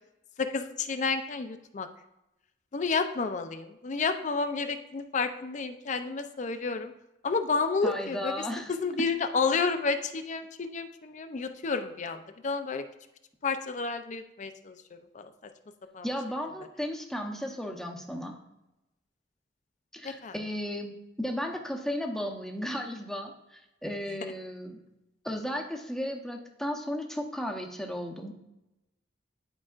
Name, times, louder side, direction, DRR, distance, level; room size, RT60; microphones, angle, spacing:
voice 1, 0.4-1.9 2.7-6.9 7.2-12.8 13.4-15.3 15.9-16.1 20.0-20.3, left 4 dB, 45° left, 8 dB, 0.5 m, -31 dB
voice 2, 7.8-8.7 16.0-18.4 19.9-24.8 25.2-28.3, equal, 5° left, 2 dB, 0.8 m, -35 dB
11.0 x 4.8 x 2.4 m, 0.91 s
head